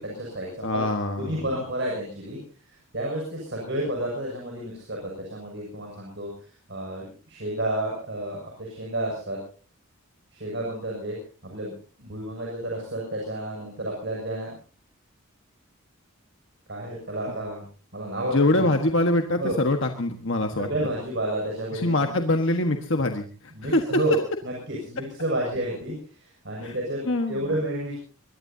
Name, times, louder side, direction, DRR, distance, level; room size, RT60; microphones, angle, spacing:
voice 1, 0.0-0.9 1.2-2.4 2.7-6.3 6.7-9.4 10.3-11.2 11.4-14.6 16.7-17.6 17.9-18.7 19.4-19.6 20.6-22.1 23.5-28.0, right 1 dB, 55° right, -1 dB, 6.7 m, -31 dB
voice 2, 0.6-1.4 18.3-20.9 21.7-24.0 26.6-26.7 27.0-27.5, left 1 dB, 60° left, 5 dB, 1.5 m, -24 dB
23.5 x 22.0 x 2.8 m, 0.39 s
head